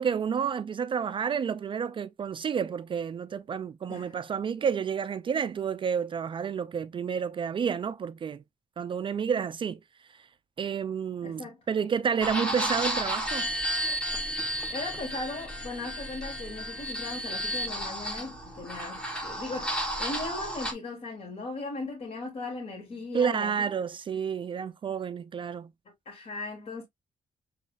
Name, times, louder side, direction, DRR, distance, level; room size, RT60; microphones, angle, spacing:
voice 1, 0.0-8.4 8.8-9.8 10.6-13.5 23.1-25.7, right 7 dB, 35° right, 0.4 m, -30 dB
voice 2, 11.2-11.6 14.7-23.5 26.1-26.8, left 3 dB, 45° left, 1.7 m, -38 dB
sound 1, 12.2-20.7, equal, 5° left, 1.3 m, -32 dB
7.1 x 3.0 x 2.4 m
wide cardioid pair, 160°, 14 cm